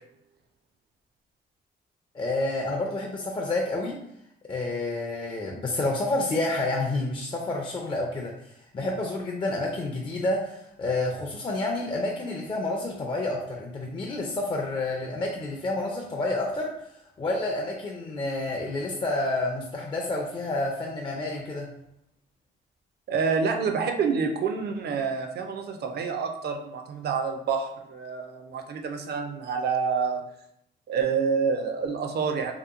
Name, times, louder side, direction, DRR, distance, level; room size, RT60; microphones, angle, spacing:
voice 1, 2.1-4.0 4.5-16.7 17.2-21.7, left 2 dB, 25° left, -1 dB, 0.4 m, -29 dB
voice 2, 23.1-30.2 30.9-32.5, right 5 dB, 55° right, 5 dB, 0.4 m, -28 dB
2.9 x 2.1 x 2.4 m, 0.77 s
cardioid pair, 90°, 20 cm